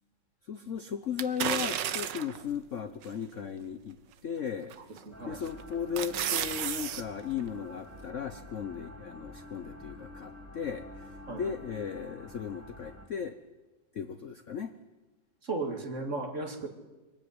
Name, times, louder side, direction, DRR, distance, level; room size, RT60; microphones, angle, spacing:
voice 1, 0.5-4.0 4.2-4.7 5.3-11.1 11.4-13.3 13.9-14.7, left 7 dB, 55° left, 10 dB, 0.9 m, -36 dB
sound 1, 1.2-2.4 3.0-3.1 4.7-5.0 5.5-7.0 7.4-7.5, right 10 dB, 65° right, 1.6 m, -32 dB
voice 2, 4.9-5.4 11.3-11.5 15.4-16.7, right 3 dB, 40° right, 6 dB, 2.4 m, -35 dB
sound 2, 5.1-13.1, left 1 dB, 5° right, 2.9 m, -48 dB
23.5 x 16.0 x 9.7 m, 1.2 s
omnidirectional pair, 2.2 m